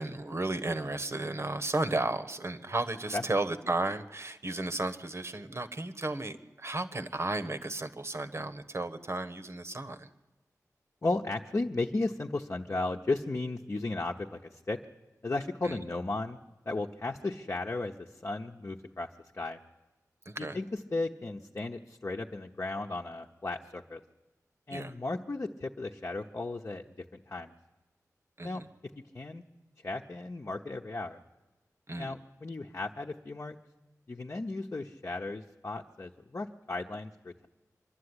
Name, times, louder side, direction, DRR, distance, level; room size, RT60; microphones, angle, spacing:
voice 1, 0.0-10.1 15.6-15.8 20.2-20.6 24.7-24.9 28.4-28.7 31.9-32.1, right 2 dB, 45° right, 12 dB, 1.3 m, -34 dB
voice 2, 11.0-14.8 15.2-16.4 16.6-19.1 19.3-19.6 20.4-20.7 20.9-24.0 24.7-26.8 27.1-27.5 28.4-28.6 29.1-29.4 29.8-31.2 32.0-33.6 34.1-37.5, left 2 dB, 45° left, 1 dB, 1.0 m, -35 dB
25.0 x 12.0 x 9.9 m, 1.1 s
wide cardioid pair, 70°, 6 cm